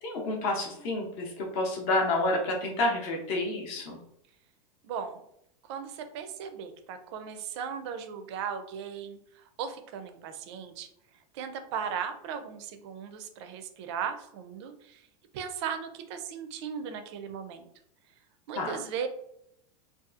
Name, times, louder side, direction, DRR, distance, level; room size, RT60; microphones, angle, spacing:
voice 1, 0.0-4.0 18.6-18.8, left 2 dB, 40° left, 0 dB, 0.7 m, -29 dB
voice 2, 4.8-5.2 5.6-10.9 11.1-15.1 15.3-17.7 18.5-19.1, right 7 dB, 50° right, 8 dB, 0.4 m, -37 dB
2.7 x 2.3 x 2.4 m, 0.75 s
supercardioid pair, 165°, 19 cm